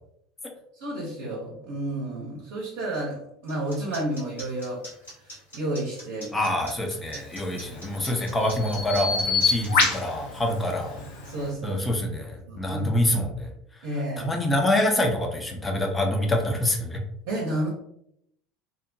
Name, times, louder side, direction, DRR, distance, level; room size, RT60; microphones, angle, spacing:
voice 1, 0.8-4.8 5.5-6.5 7.6-8.0 11.2-11.8 12.5-13.0 13.8-14.4 17.2-17.7, right 1 dB, 60° right, -3 dB, 0.7 m, -31 dB
sound 1, 3.5-9.7, equal, 85° left, 1.3 m, -42 dB
voice 2, 6.3-11.0 11.6-13.5 14.2-17.0, left 1 dB, 15° left, 2 dB, 0.5 m, -26 dB
Bird vocalization bird call bird song, 7.3-11.5, left 4 dB, 65° left, 0.6 m, -28 dB
2.8 x 2.1 x 2.6 m, 0.75 s
figure-of-eight pair, 70°, 0 cm